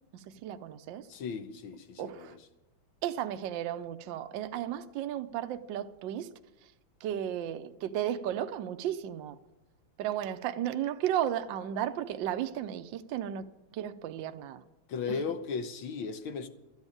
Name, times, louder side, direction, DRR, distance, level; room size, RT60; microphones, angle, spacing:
voice 1, 0.1-1.1 2.0-2.4 3.0-6.3 6.6-6.7 7.0-9.4 10.0-13.4 13.7-14.6 15.1-15.2, right 11 dB, 70° right, 1.2 m, -34 dB
voice 2, 1.1-2.4 14.9-16.5, left 5 dB, 70° left, 1.7 m, -36 dB
13.0 x 8.0 x 9.8 m
omnidirectional pair, 2.4 m